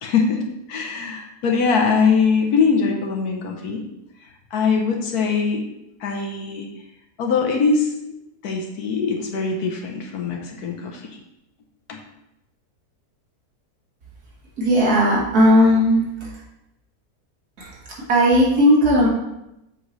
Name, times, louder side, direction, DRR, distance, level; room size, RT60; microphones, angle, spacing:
voice 1, 0.0-3.8 4.5-5.6 6.0-6.7 7.2-8.1 8.4-11.2 11.9-12.0, left 5 dB, 75° left, 1 dB, 1.3 m, -22 dB
voice 2, 14.6-16.3 17.6-19.1, equal, 75° right, -4 dB, 2.4 m, -17 dB
7.6 x 4.9 x 4.0 m, 0.88 s
omnidirectional pair, 1.6 m